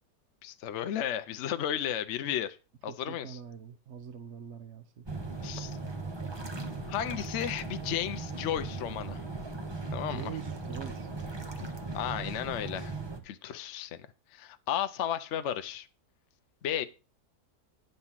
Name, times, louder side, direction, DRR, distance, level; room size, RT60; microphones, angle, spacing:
voice 1, 0.4-2.5 2.8-3.4 5.4-5.8 6.9-9.2 9.9-10.3 11.9-12.9 13.2-15.9 16.6-16.9, left 10 dB, 65° left, 0.7 m, -34 dB
voice 2, 2.9-5.1 10.1-12.0, right 7 dB, 55° right, 0.9 m, -45 dB
sound 1, 5.1-13.2, right 3 dB, 20° right, 0.9 m, -38 dB
9.7 x 4.0 x 7.2 m
omnidirectional pair, 1.8 m